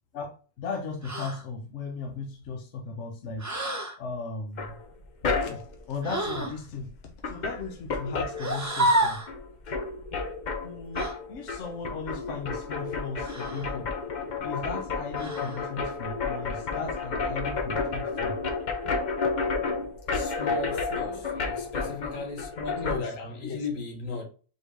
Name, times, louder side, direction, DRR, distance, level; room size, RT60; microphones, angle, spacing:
voice 1, 0.1-3.5 4.0-4.8 5.3-9.3 10.6-13.9 14.4-18.4 22.8-23.0 23.4-23.6, left 4 dB, 65° left, 1.1 m, -37 dB
sound 1, 1.0-1.4 3.4-4.0 6.0-6.6 8.4-9.3 11.0-11.2 13.2-13.7 15.1-15.6, right 1 dB, 20° right, 0.5 m, -29 dB
sound 2, 4.6-5.8 6.9-7.0 7.2-9.0 9.3-23.0, left 4 dB, 45° left, 0.6 m, -31 dB
voice 2, 20.1-24.2, left 3 dB, 90° left, 1.4 m, -36 dB
4.4 x 3.1 x 3.3 m
omnidirectional pair, 1.3 m